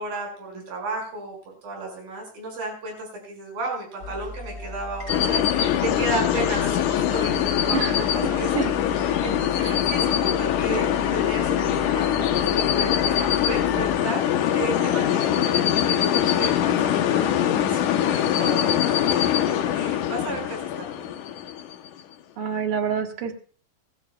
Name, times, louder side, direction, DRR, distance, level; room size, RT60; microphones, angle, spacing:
voice 1, 0.0-8.7 9.0-9.6 9.9-21.1, right 2 dB, 85° right, 1 dB, 7.3 m, -34 dB
sound 1, 4.0-14.0, left 1 dB, 20° left, 2.6 m, -37 dB
sound 2, 5.1-21.9, left 10 dB, 70° left, 2.2 m, -23 dB
voice 2, 7.7-8.1 8.5-8.7 9.6-9.8 10.6-10.8 22.4-23.3, right 7 dB, 55° right, 5 dB, 1.7 m, -28 dB
20.0 x 15.0 x 2.3 m, 0.41 s
omnidirectional pair, 4.0 m